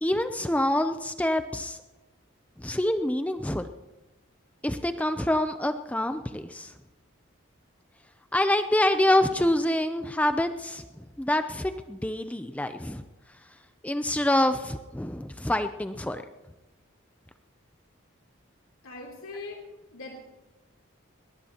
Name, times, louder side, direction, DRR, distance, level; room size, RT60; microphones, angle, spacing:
voice 1, 0.0-1.8 2.6-3.7 4.6-6.7 8.3-10.8 11.2-13.0 13.8-16.2, left 1 dB, 5° left, 8 dB, 0.4 m, -26 dB
voice 2, 18.8-19.6 19.9-20.3, left 2 dB, 90° left, -1 dB, 3.1 m, -40 dB
21.0 x 19.5 x 2.9 m, 1.1 s
head